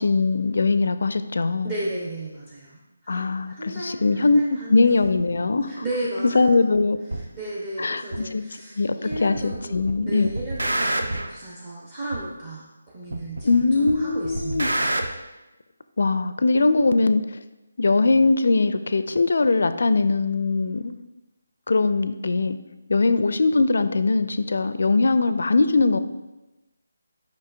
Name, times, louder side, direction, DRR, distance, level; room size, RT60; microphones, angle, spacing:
voice 1, 0.0-1.7 3.1-5.8 6.3-7.0 7.8-8.4 8.8-10.3 13.4-14.7 16.0-17.4 17.8-20.9 21.7-22.6 22.9-26.0, left 3 dB, 55° left, 11 dB, 0.4 m, -21 dB
voice 2, 1.6-5.1 5.7-6.7 7.1-14.9, right 1 dB, 30° right, -6 dB, 0.9 m, -35 dB
sound 1, 7.1-7.2 8.1-8.2 9.1-9.6 9.9-11.3 12.1-12.2 13.1-13.6 13.9-15.1, right 1 dB, 70° right, 0.6 m, -27 dB
7.4 x 5.4 x 2.6 m, 1.0 s
figure-of-eight pair, 150°, 0 cm